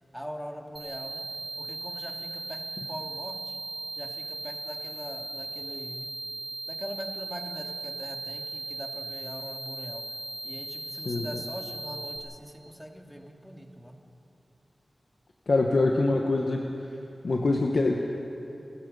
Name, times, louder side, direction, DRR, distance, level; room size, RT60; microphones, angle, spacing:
voice 1, 0.1-1.2 1.6-3.6 3.9-6.1 6.7-10.0 10.4-13.9, equal, ahead, 1 dB, 2.5 m, -42 dB
sound 1, 0.8-12.2, right 2 dB, 80° right, 2.7 m, -38 dB
voice 2, 11.1-11.4 15.5-16.7 17.2-18.0, left 2 dB, 70° left, 1 dB, 1.2 m, -24 dB
30.0 x 16.0 x 5.5 m, 3.0 s
cardioid pair, 55°, 0 cm